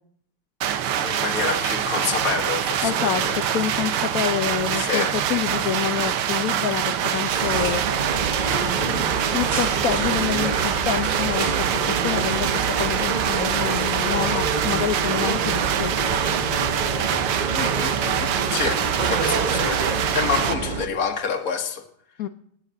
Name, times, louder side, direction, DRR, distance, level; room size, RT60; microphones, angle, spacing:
sound 1, 0.6-20.5, right 9 dB, 90° right, 1.8 m, -25 dB
voice 1, 1.0-3.4 4.7-5.2 17.5-18.8 19.1-21.8, left 6 dB, 45° left, 3 dB, 1.8 m, -28 dB
voice 2, 2.8-7.8 8.8-15.9 22.2-22.3, left 10 dB, 75° left, 9 dB, 0.8 m, -27 dB
sound 2, 7.3-20.9, right 3 dB, 30° right, 0.9 m, -28 dB
19.5 x 6.6 x 8.0 m, 0.67 s
omnidirectional pair, 2.3 m